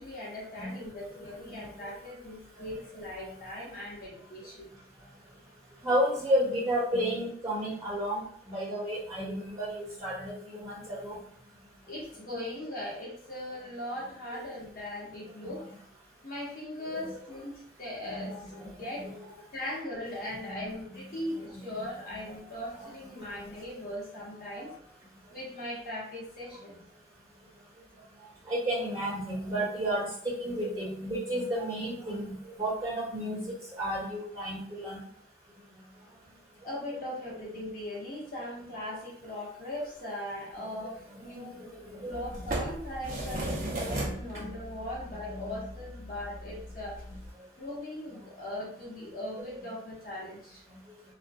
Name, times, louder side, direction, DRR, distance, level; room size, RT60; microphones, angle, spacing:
voice 1, 0.0-4.7 11.9-15.6 16.2-19.1 19.5-24.7 25.3-26.8 36.6-41.6 42.0-47.0 47.6-50.6, left 1 dB, 50° left, -6 dB, 0.9 m, -39 dB
voice 2, 0.5-0.9 1.5-1.9 3.2-3.3 5.8-11.2 14.3-14.4 15.4-15.5 16.9-17.1 18.1-19.3 20.4-20.6 20.9-21.0 21.7-21.8 22.1-22.2 22.8-22.9 23.2-23.3 24.6-24.7 28.5-35.0 41.2-42.2 43.8-44.5 45.3-45.6 47.1-47.2, equal, 20° right, -8 dB, 1.2 m, -33 dB
sound 1, 42.1-47.3, right 1 dB, 45° right, 0.7 m, -37 dB
2.4 x 2.1 x 2.4 m, 0.64 s
head